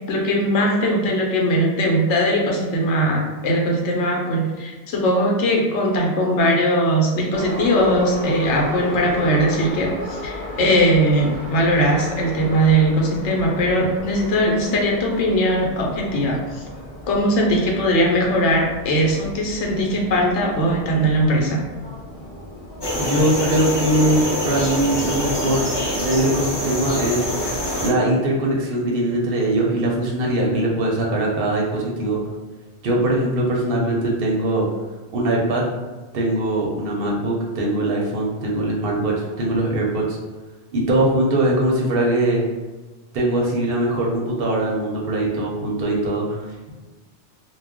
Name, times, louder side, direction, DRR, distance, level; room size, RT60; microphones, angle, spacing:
voice 1, 0.1-16.6 17.1-21.6, equal, 80° left, 0 dB, 1.0 m, -20 dB
Subway metro underground, 7.3-27.1, left 1 dB, 50° left, 0.9 m, -35 dB
sound 1, 22.8-27.9, equal, 35° left, 0.4 m, -25 dB
voice 2, 23.0-25.7 26.0-27.3 27.8-32.2 32.8-34.7 35.1-35.6 36.1-40.2 40.7-42.4 43.1-46.4, right 1 dB, 60° right, -2 dB, 0.7 m, -21 dB
2.3 x 2.1 x 3.5 m, 1.3 s
omnidirectional pair, 1.2 m